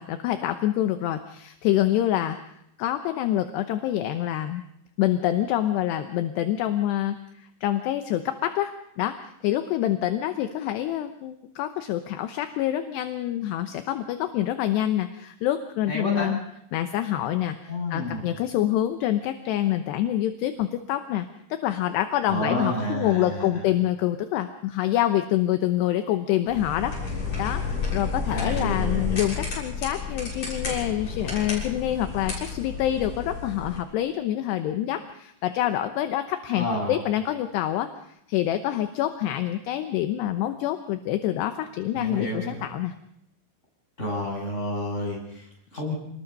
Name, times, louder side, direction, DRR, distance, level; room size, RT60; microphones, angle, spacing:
voice 1, 0.0-2.4 2.8-4.6 5.0-16.4 16.7-37.9 38.3-42.9, left 12 dB, 75° left, 8 dB, 2.9 m, -26 dB
voice 2, 15.9-16.3 17.7-18.2 22.3-23.7 28.3-29.2 36.5-37.0 41.9-42.7 44.0-45.9, left 1 dB, 15° left, -1 dB, 7.7 m, -30 dB
sound 1, 26.5-33.8, left 5 dB, 35° left, 7.6 m, -31 dB
27.0 x 20.5 x 5.4 m, 0.78 s
omnidirectional pair, 5.2 m